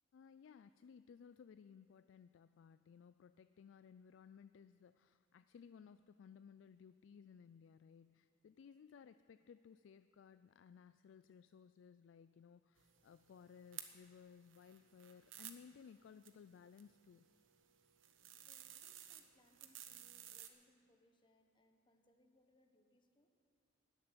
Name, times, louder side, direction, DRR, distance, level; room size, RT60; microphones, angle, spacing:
voice 1, 0.1-17.3, left 6 dB, 70° left, 12 dB, 0.3 m, -60 dB
sound 1, 12.8-20.5, right 11 dB, 90° right, 1.0 m, -56 dB
voice 2, 18.1-23.3, left 1 dB, 25° left, 5 dB, 1.2 m, -74 dB
13.5 x 7.6 x 9.7 m, 2.3 s
head